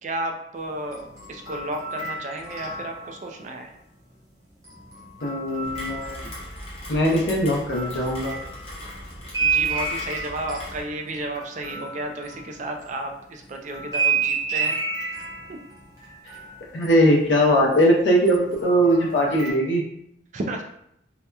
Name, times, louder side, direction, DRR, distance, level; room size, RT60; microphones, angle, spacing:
voice 1, 0.0-3.7 9.4-14.8 15.5-15.6 20.3-20.6, right 1 dB, 40° right, 3 dB, 0.3 m, -32 dB
sound 1, 0.8-3.4 4.6-6.7 7.1-13.0 13.7-17.8 18.2-19.5, right 5 dB, 20° right, 0.8 m, -31 dB
voice 2, 5.2-6.2 6.9-8.3 16.7-19.8, equal, 75° left, -1 dB, 0.6 m, -20 dB
Rain, 5.6-10.8, equal, 35° left, 0.7 m, -39 dB
2.8 x 2.2 x 2.2 m, 0.74 s
head